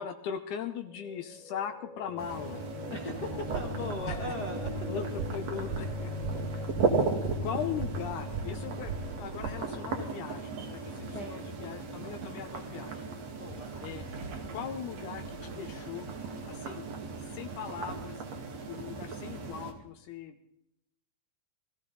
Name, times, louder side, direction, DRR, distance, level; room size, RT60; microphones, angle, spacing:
voice 1, 0.0-2.6 4.0-4.3 4.9-6.1 6.5-6.7 7.4-13.1 13.8-14.0 14.5-16.1 16.5-16.9 17.3-18.2 18.7-20.4, left 8 dB, 75° left, 7 dB, 2.3 m, -39 dB
sound 1, 0.9-12.9, left 2 dB, 20° left, 1.2 m, -41 dB
sound 2, 2.2-19.7, right 4 dB, 55° right, 2.8 m, -37 dB
voice 2, 2.9-4.7 11.1-11.7 13.4-13.8, left 1 dB, 45° left, 2 dB, 1.4 m, -39 dB
sound 3, 3.3-9.5, right 5 dB, 70° right, 2.4 m, -40 dB
20.0 x 15.0 x 4.0 m, 0.78 s
omnidirectional pair, 3.7 m